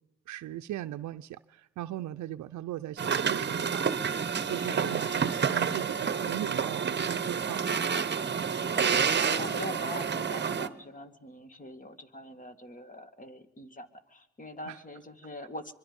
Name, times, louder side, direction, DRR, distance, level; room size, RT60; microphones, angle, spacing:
voice 1, 0.3-3.8 4.5-7.6 14.7-14.8, right 13 dB, 70° right, 0.6 m, -38 dB
sound 1, 3.0-10.7, right 6 dB, 35° right, 1.1 m, -29 dB
voice 2, 8.3-15.7, left 1 dB, 25° left, 2.1 m, -43 dB
24.5 x 23.0 x 5.3 m
cardioid pair, 90°, 30 cm